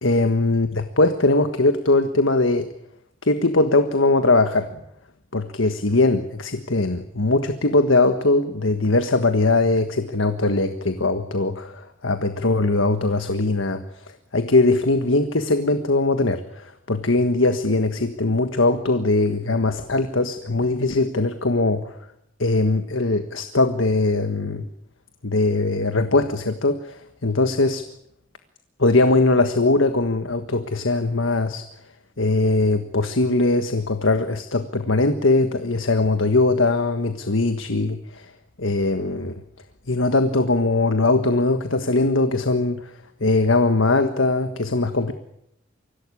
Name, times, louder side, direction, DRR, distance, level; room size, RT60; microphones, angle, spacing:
voice 1, 0.0-2.7 3.2-4.8 5.3-13.8 14.3-21.9 22.4-24.7 25.2-27.8 28.8-31.6 32.2-38.3 38.6-39.3 39.9-42.8 43.2-45.1, left 2 dB, 90° left, 8 dB, 1.6 m, -20 dB
25.0 x 17.0 x 9.9 m, 0.79 s
head